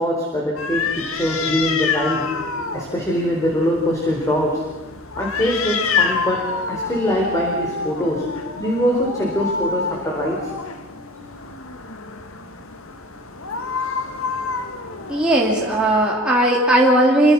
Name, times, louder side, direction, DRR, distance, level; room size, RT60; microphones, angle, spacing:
voice 1, 0.0-2.3 2.7-4.6 5.1-10.5 13.8-14.0, equal, 15° left, -1 dB, 4.4 m, -23 dB
sound 1, 0.6-16.1, left 5 dB, 70° left, 1.9 m, -28 dB
voice 2, 15.1-17.3, right 1 dB, 5° right, -4 dB, 3.1 m, -17 dB
28.0 x 25.0 x 6.1 m, 1.2 s
head